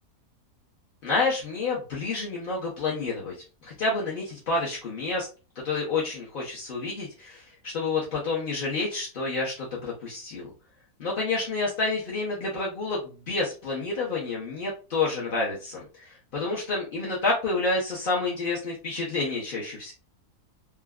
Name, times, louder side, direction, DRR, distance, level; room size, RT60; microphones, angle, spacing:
voice 1, 1.0-3.3 3.6-5.3 5.6-10.5 11.0-13.0 13.3-19.9, left 3 dB, 50° left, -5 dB, 0.7 m, -29 dB
3.4 x 2.1 x 2.3 m, 0.33 s
omnidirectional pair, 1.7 m